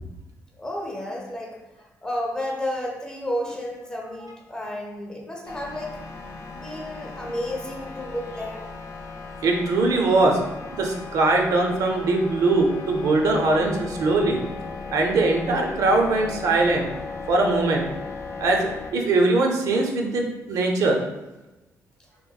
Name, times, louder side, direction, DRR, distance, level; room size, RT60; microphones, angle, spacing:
voice 1, 0.6-6.0 6.5-8.7, left 1 dB, 15° left, -1 dB, 0.5 m, -32 dB
sound 1, 5.5-18.9, left 4 dB, 60° left, 0.4 m, -37 dB
voice 2, 9.4-10.4 10.7-14.4 14.9-16.9 17.3-17.8 18.4-21.0, right 2 dB, 75° right, 2 dB, 0.5 m, -21 dB
3.4 x 2.9 x 2.2 m, 1.1 s
wide cardioid pair, 150°, 6 cm